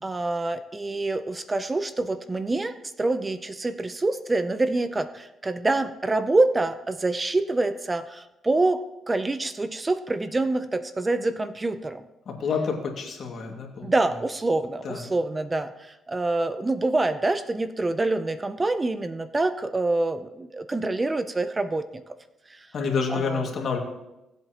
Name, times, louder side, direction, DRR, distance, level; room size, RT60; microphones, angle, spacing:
voice 1, 0.0-12.1 13.8-22.0 22.5-22.7 23.1-23.4, right 2 dB, 20° right, 11 dB, 0.5 m, -26 dB
voice 2, 12.3-13.9 14.8-15.1 22.7-23.8, left 5 dB, 55° left, 1 dB, 2.1 m, -28 dB
18.0 x 7.9 x 3.0 m, 0.95 s
cardioid pair, 90°, 0 cm